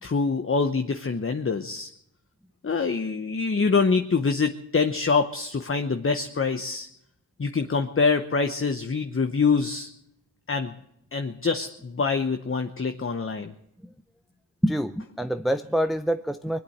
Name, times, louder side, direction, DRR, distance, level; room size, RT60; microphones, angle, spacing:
voice 1, 0.0-1.9 2.6-6.9 7.4-9.9 10.5-10.7 11.1-13.5, left 4 dB, 30° left, 7 dB, 0.9 m, -25 dB
voice 2, 14.6-16.6, equal, ahead, 9 dB, 0.6 m, -26 dB
21.0 x 8.6 x 7.9 m, 0.79 s
cardioid pair, 45°, 41 cm